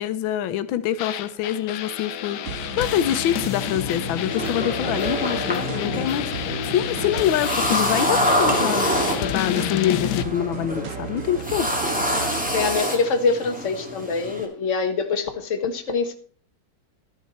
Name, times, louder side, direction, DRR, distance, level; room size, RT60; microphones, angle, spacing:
voice 1, 0.0-8.9 9.2-11.7, left 11 dB, 90° left, 1.5 m, -25 dB
sound 1, 1.0-10.2, left 12 dB, 70° left, 1.2 m, -29 dB
sound 2, 2.4-12.8, right 7 dB, 55° right, 0.9 m, -35 dB
sound 3, 4.3-14.4, equal, 5° right, 2.2 m, -27 dB
voice 2, 12.5-16.1, left 4 dB, 45° left, 1.5 m, -24 dB
12.5 x 9.6 x 4.2 m
omnidirectional pair, 2.1 m